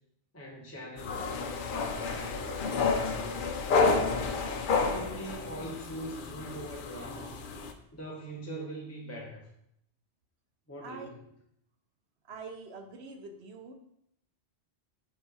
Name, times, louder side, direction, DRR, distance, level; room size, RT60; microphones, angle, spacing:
voice 1, 0.3-4.4 4.9-7.5 7.9-9.5 10.7-11.3, right 1 dB, 15° left, -3 dB, 0.8 m, -43 dB
sound 1, 1.0-7.7, left 4 dB, 60° left, 0.7 m, -30 dB
voice 2, 10.8-11.1 12.3-13.7, right 3 dB, 70° right, 5 dB, 1.0 m, -44 dB
4.9 x 4.0 x 4.8 m, 0.75 s
omnidirectional pair, 1.1 m